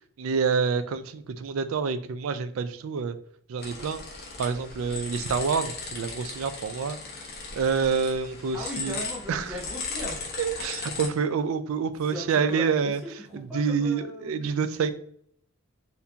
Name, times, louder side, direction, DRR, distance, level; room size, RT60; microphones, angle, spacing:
voice 1, 0.2-3.2 3.5-4.0 4.4-7.0 7.5-9.0 9.3-9.5 10.4-13.0 13.3-14.9, right 5 dB, 80° right, 12 dB, 0.4 m, -27 dB
sound 1, 3.6-11.1, left 4 dB, 45° left, 1.0 m, -37 dB
voice 2, 8.5-10.2 12.1-14.9, left 1 dB, 5° right, -4 dB, 0.7 m, -39 dB
4.2 x 2.6 x 2.7 m, 0.65 s
head